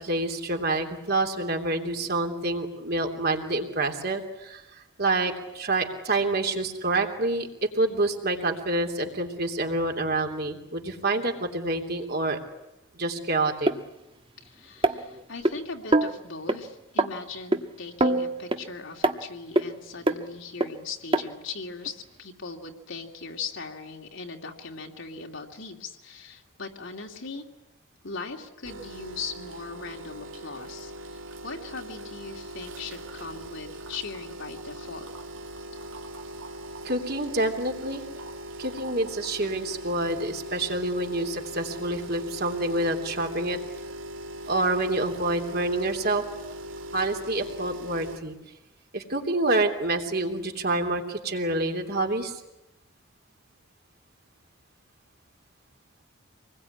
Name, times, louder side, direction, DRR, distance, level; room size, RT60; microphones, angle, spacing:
voice 1, 0.0-12.4 12.9-13.7 36.8-38.0 38.6-43.6 44.5-46.2 46.9-48.3 48.9-52.4, right 2 dB, 50° right, 3 dB, 3.2 m, -27 dB
sound 1, 13.7-13.8 14.8-15.5 15.9-16.1 16.5-16.6 17.0-17.1 17.5-17.6 18.0-18.6 19.0-19.2 19.6-19.7 20.1-20.2 20.6-20.7 21.1-21.2 21.9-22.0, right 1 dB, 25° right, 1.3 m, -23 dB
voice 2, 14.4-27.4 28.0-35.1, left 4 dB, 65° left, 1 dB, 2.6 m, -39 dB
sound 2, 28.6-48.2, right 1 dB, 70° right, 2.8 m, -40 dB
26.5 x 21.0 x 9.8 m, 0.93 s
head